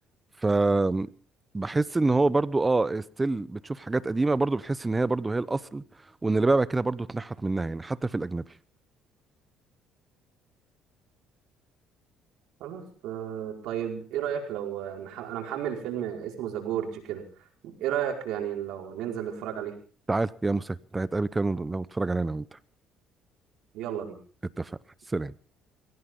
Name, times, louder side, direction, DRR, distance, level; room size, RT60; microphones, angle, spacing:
voice 1, 0.4-1.1 1.5-5.8 6.2-8.4 20.1-22.6 24.6-24.7 25.1-25.3, right 3 dB, 15° right, 0.8 m, -26 dB
voice 2, 12.6-17.2 17.6-19.7 23.7-24.2, right 10 dB, 80° right, 4.9 m, -33 dB
21.5 x 16.5 x 3.8 m
cardioid pair, 105°, 0 cm